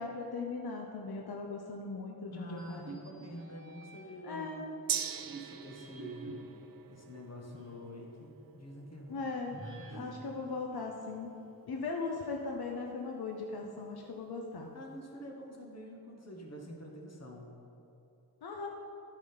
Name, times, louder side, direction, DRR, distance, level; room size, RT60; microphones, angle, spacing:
voice 1, 0.0-2.8 4.3-4.7 9.1-9.6 9.9-11.4 11.6-14.7 18.4-18.7, left 3 dB, 80° left, 1 dB, 0.8 m, -38 dB
voice 2, 2.3-4.7 5.3-6.3 6.9-9.2 9.6-9.9 14.7-17.5, equal, 45° left, 0 dB, 1.4 m, -47 dB
sound 1, 2.5-4.4 4.9-7.9 8.3-8.4 9.5-11.6, right 2 dB, 35° right, 1.1 m, -49 dB
Gong, 4.9-12.6 13.0-13.1, right 8 dB, 65° right, 0.5 m, -44 dB
11.5 x 4.9 x 5.5 m, 2.9 s
wide cardioid pair, 95°, 37 cm